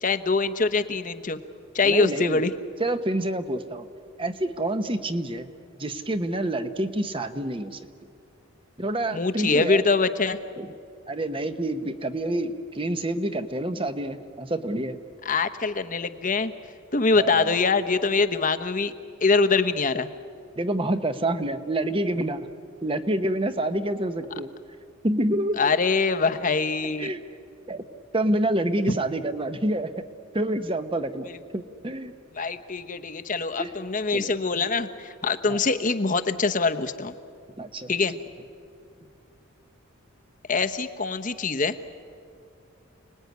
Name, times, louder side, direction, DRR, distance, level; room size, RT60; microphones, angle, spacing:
voice 1, 0.0-1.4 1.7-2.5 9.1-10.4 15.2-16.5 16.9-18.9 19.2-20.1 25.6-27.1 28.9-29.0 31.2-31.4 32.3-37.1 37.9-38.1 40.5-41.8, left 4 dB, 40° left, 10 dB, 1.0 m, -24 dB
voice 2, 1.8-2.4 2.8-3.9 4.2-5.5 5.8-7.9 8.8-9.8 10.6-10.7 11.1-15.0 17.2-17.6 20.6-22.5 22.8-24.5 25.0-25.7 27.0-27.2 27.7-27.8 28.1-30.0 30.3-31.3 31.5-32.1 33.6-33.7 34.1-34.3 35.5-35.6 37.6-37.9, right 1 dB, 25° right, 9 dB, 1.0 m, -27 dB
29.5 x 20.0 x 9.4 m, 2.4 s
head